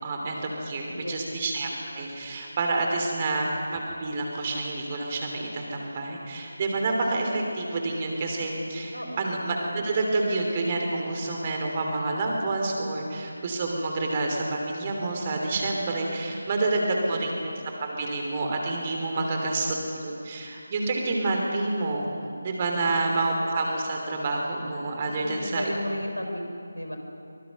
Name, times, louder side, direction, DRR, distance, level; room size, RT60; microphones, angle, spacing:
voice 1, 0.0-17.5 17.8-22.1 22.4-25.7, right 2 dB, 25° right, 1 dB, 3.1 m, -28 dB
voice 2, 0.9-1.2 3.0-3.2 8.9-9.3 16.7-17.4 19.1-19.5 22.8-23.2 25.2-26.5 26.7-27.0, equal, 90° left, 4 dB, 4.0 m, -35 dB
24.5 x 20.5 x 6.0 m, 2.5 s
figure-of-eight pair, 160°, 0 cm